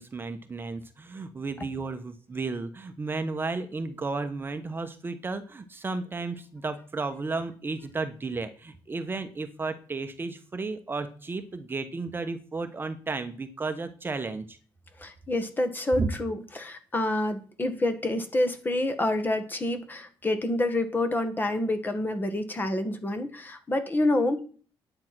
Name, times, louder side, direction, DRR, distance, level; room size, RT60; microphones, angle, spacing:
voice 1, 0.0-14.6 16.0-16.1, right 3 dB, 25° right, 8 dB, 1.1 m, -33 dB
voice 2, 15.0-24.4, left 1 dB, 20° left, 7 dB, 1.7 m, -28 dB
10.5 x 8.9 x 6.1 m, 0.40 s
cardioid pair, 140°, 9 cm